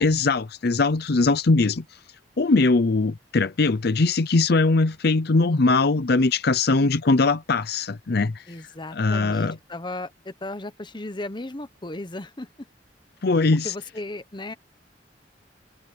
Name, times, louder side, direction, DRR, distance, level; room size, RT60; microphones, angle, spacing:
voice 1, 0.0-1.8 2.4-8.4 8.9-9.6 13.2-13.7, left 3 dB, 60° left, 0.7 m, -21 dB
voice 2, 8.5-12.7 13.6-14.5, left 2 dB, 25° left, 1.1 m, -35 dB
head